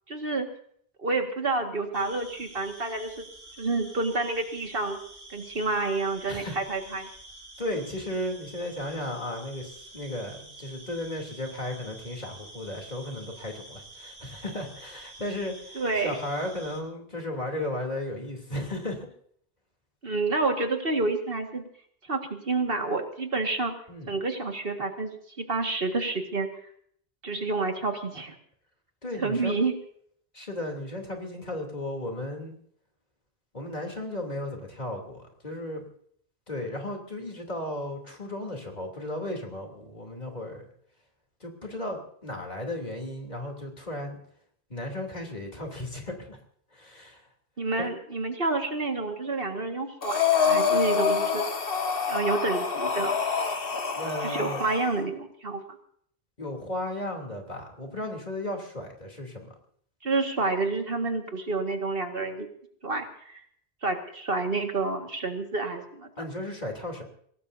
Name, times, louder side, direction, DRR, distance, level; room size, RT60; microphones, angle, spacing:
voice 1, 0.1-0.5 1.0-3.3 3.6-5.0 5.3-7.1 15.8-16.2 20.0-21.6 22.1-23.7 24.1-26.5 27.2-28.4 29.2-29.7 47.6-51.5 52.0-53.2 54.2-55.6 60.0-62.5 62.8-63.4 63.8-66.1, right 3 dB, 65° right, 4 dB, 2.0 m, -29 dB
sound 1, 1.9-16.8, right 2 dB, 80° right, 3.5 m, -48 dB
voice 2, 7.6-19.1 23.9-24.1 29.0-29.5 30.3-32.6 33.5-35.8 36.5-40.6 41.4-44.2 44.7-46.4 46.7-47.3 47.8-47.9 54.0-54.6 56.4-59.5 66.2-67.0, left 1 dB, 45° left, 2 dB, 3.2 m, -35 dB
Breathing, 50.0-55.0, left 6 dB, 65° left, 1.7 m, -26 dB
23.5 x 18.0 x 2.7 m, 0.64 s
omnidirectional pair, 1.0 m